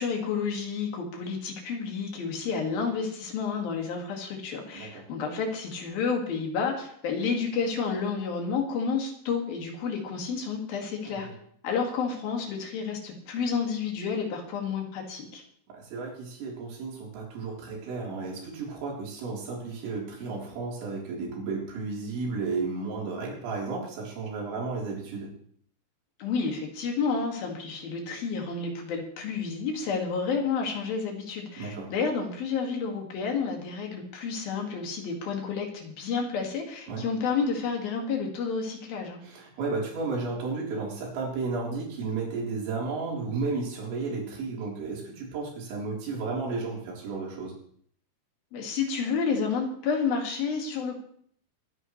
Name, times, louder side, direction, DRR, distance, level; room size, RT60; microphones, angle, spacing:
voice 1, 0.0-11.3 11.6-15.4 26.2-39.2 48.5-51.0, left 5 dB, 55° left, 1 dB, 3.4 m, -30 dB
voice 2, 15.9-25.3 31.6-31.9 36.9-37.0 39.2-47.5, right 4 dB, 65° right, -3 dB, 6.0 m, -33 dB
24.0 x 10.5 x 3.2 m, 0.63 s
omnidirectional pair, 5.8 m